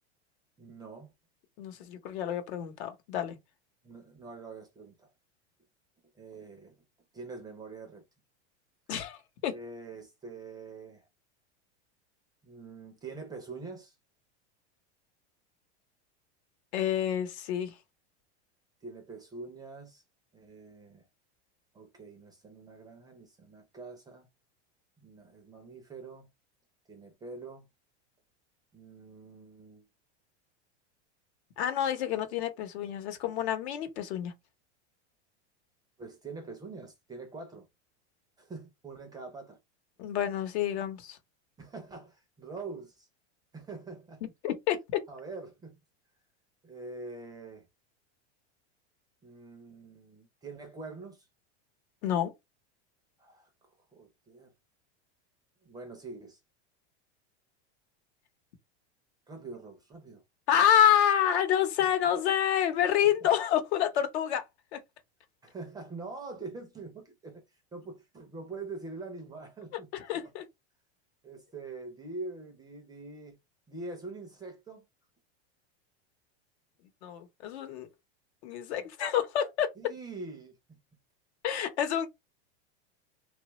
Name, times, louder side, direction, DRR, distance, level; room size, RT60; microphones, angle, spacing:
voice 1, 0.6-1.1 3.8-5.1 6.2-6.7 7.1-8.0 9.5-11.1 12.4-14.0 18.8-20.0 20.3-21.0 21.7-24.3 25.0-26.3 26.9-27.6 28.7-29.9 36.0-37.7 38.4-39.6 41.6-43.1 43.5-44.2 45.1-45.8 46.6-47.7 49.2-51.3 53.2-53.5 53.9-54.5 55.6-56.4 59.3-60.2 61.8-61.9 65.4-67.4 67.7-70.3 71.2-73.4 73.7-74.9 79.8-80.8, right 3 dB, 10° right, 0.4 m, -44 dB
voice 2, 1.6-3.4 8.9-9.5 16.7-17.7 31.6-34.3 40.0-41.2 44.4-45.0 52.0-52.3 60.5-64.4 64.7-64.8 69.9-70.4 77.0-77.9 78.4-79.7 81.4-82.1, left 10 dB, 70° left, 0.9 m, -28 dB
3.1 x 2.3 x 2.9 m
supercardioid pair, 150°, 34 cm